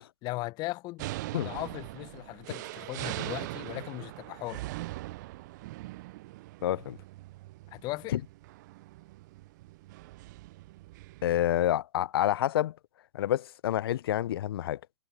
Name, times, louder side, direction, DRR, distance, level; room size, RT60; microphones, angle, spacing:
voice 1, 0.2-1.1 1.3-4.6 7.7-8.2, left 21 dB, 25° left, 1.1 m, -38 dB
sound 1, 1.0-11.8, right 19 dB, 35° right, 0.8 m, -41 dB
voice 2, 6.6-7.0 8.1-8.2 11.2-12.7 13.1-14.8, left 12 dB, 50° left, 0.9 m, -28 dB
figure-of-eight pair, 125°, 16 cm